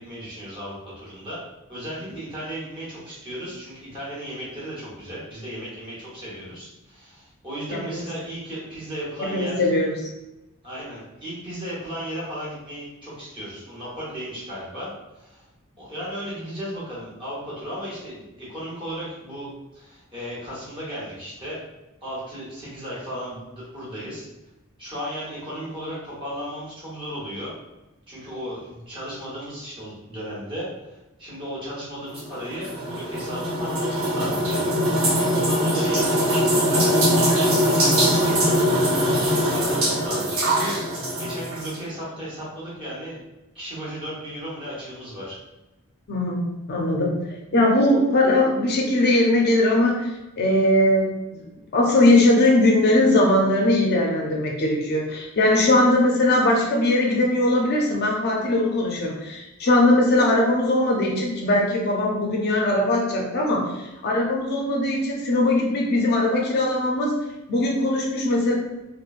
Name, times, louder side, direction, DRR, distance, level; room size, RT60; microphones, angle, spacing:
voice 1, 0.0-1.4 1.7-9.7 10.6-15.4 15.8-21.6 22.0-24.2 24.8-27.5 28.1-34.7 35.3-37.6 38.2-40.9 41.2-43.2 43.5-45.4, equal, 25° right, -8 dB, 1.1 m, -35 dB
voice 2, 9.2-9.9 46.1-47.1 47.5-51.4 51.7-67.2 67.5-68.5, left 1 dB, 50° left, -1 dB, 0.5 m, -20 dB
sound 1, 32.1-41.8, equal, 65° right, 0.9 m, -22 dB
3.1 x 2.1 x 2.4 m, 0.98 s
head